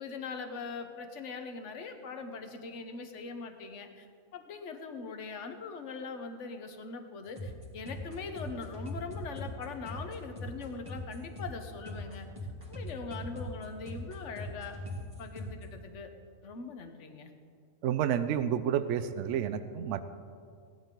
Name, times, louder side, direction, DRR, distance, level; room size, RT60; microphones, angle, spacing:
voice 1, 0.0-4.1 4.3-12.3 12.7-14.8 15.2-16.1 16.4-17.3, left 4 dB, 60° left, 6 dB, 1.3 m, -41 dB
sound 1, 7.3-15.6, left 1 dB, 15° right, 2.6 m, -41 dB
voice 2, 17.8-20.0, right 9 dB, 65° right, 12 dB, 0.9 m, -30 dB
17.5 x 11.5 x 3.8 m, 2.2 s
omnidirectional pair, 1.4 m